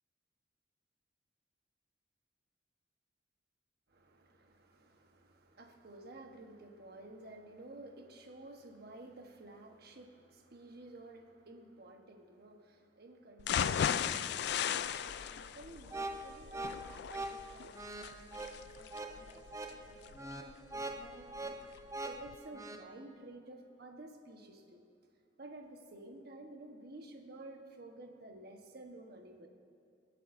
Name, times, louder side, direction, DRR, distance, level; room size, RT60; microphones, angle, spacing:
voice 1, 3.9-21.8 22.0-24.8 25.4-29.5, right 2 dB, 60° right, 3 dB, 1.1 m, -53 dB
sound 1, 13.4-21.4 21.8-21.9 22.3-22.4, left 8 dB, 65° left, 0.3 m, -37 dB
sound 2, 15.9-22.8, right 2 dB, 15° right, 0.5 m, -43 dB
24.0 x 8.3 x 2.6 m, 2.6 s
head